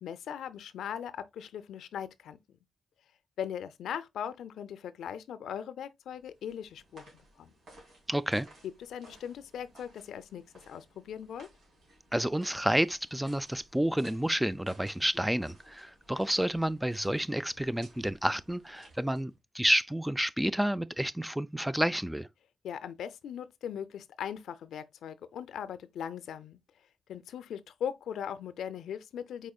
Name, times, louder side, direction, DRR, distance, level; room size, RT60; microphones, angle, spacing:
voice 1, 0.0-2.6 3.4-7.1 7.4-7.5 8.9-11.5 22.6-26.6 27.1-29.5, left 8 dB, 85° left, 0.4 m, -39 dB
sound 1, 6.1-19.4, right 1 dB, 70° right, 2.7 m, -58 dB
voice 2, 8.1-8.5 12.1-22.3, right 1 dB, 5° right, 0.3 m, -30 dB
4.9 x 4.2 x 2.3 m
cardioid pair, 100°, 0 cm